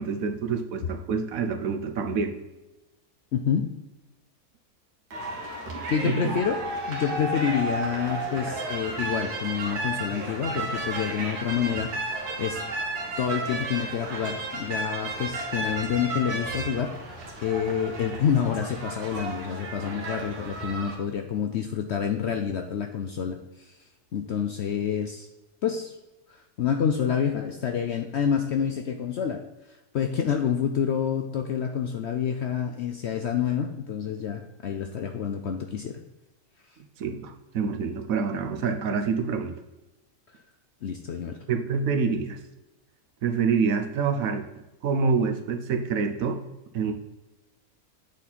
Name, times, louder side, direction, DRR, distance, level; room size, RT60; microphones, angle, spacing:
voice 1, 0.0-2.3 6.0-6.3 37.0-39.5 41.5-42.4 43.2-44.4 44.8-46.4 46.7-46.9, right 5 dB, 65° right, 6 dB, 1.1 m, -26 dB
voice 2, 3.3-3.7 5.9-6.6 6.9-12.6 13.2-23.7 24.1-25.3 25.6-26.0 26.3-29.4 29.7-36.0 40.8-41.4, left 8 dB, 65° left, 5 dB, 0.7 m, -28 dB
sound 1, 5.1-20.9, right 2 dB, 85° right, 1.9 m, -33 dB
8.2 x 4.3 x 4.1 m, 1.0 s
omnidirectional pair, 1.6 m